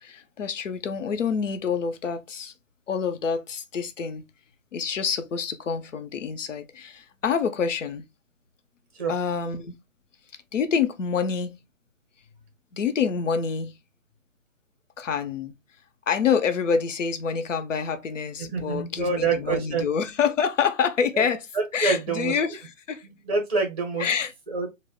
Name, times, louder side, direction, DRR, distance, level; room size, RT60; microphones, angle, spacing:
voice 1, 0.0-2.5 2.9-4.2 4.7-8.0 9.1-9.8 10.5-11.6 12.7-13.8 15.0-15.5 16.1-21.5 21.7-23.1 24.0-24.3, left 6 dB, 70° left, 0.7 m, -27 dB
voice 2, 18.5-19.9 21.5-22.3 23.2-24.1 24.5-24.7, right 4 dB, 30° right, 0.6 m, -26 dB
2.4 x 2.0 x 3.4 m
hypercardioid pair, 170°, 39 cm